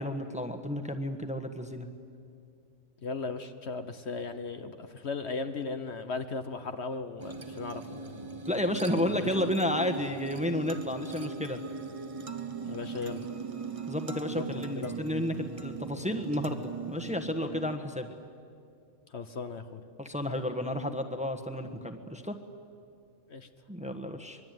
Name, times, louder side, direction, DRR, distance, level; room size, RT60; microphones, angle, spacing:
voice 1, 0.0-1.9 8.5-11.6 13.9-18.1 20.0-22.4 23.7-24.4, left 1 dB, 5° right, 5 dB, 1.3 m, -32 dB
voice 2, 3.0-8.2 9.1-9.3 12.6-13.2 14.3-14.9 19.1-19.9 23.3-23.5, left 4 dB, 60° left, 8 dB, 1.3 m, -37 dB
sound 1, 7.2-17.8, right 4 dB, 30° right, 1.2 m, -39 dB
24.5 x 22.0 x 9.4 m, 2.4 s
omnidirectional pair, 1.3 m